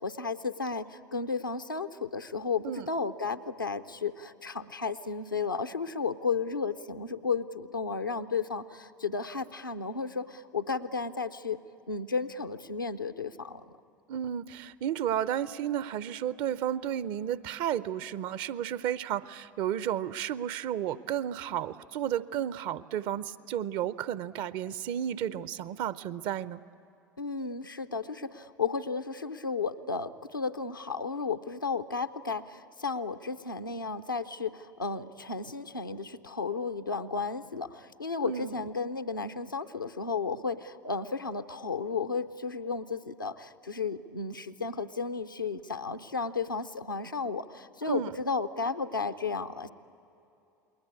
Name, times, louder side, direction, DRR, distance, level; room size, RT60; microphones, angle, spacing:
voice 1, 0.0-11.6 11.9-13.6 27.2-49.7, left 5 dB, 85° left, 10 dB, 0.7 m, -33 dB
voice 2, 14.1-26.6 38.2-38.6 47.9-48.2, right 10 dB, 50° right, 17 dB, 0.7 m, -32 dB
29.0 x 21.0 x 8.4 m, 2.7 s
figure-of-eight pair, 70°, 11 cm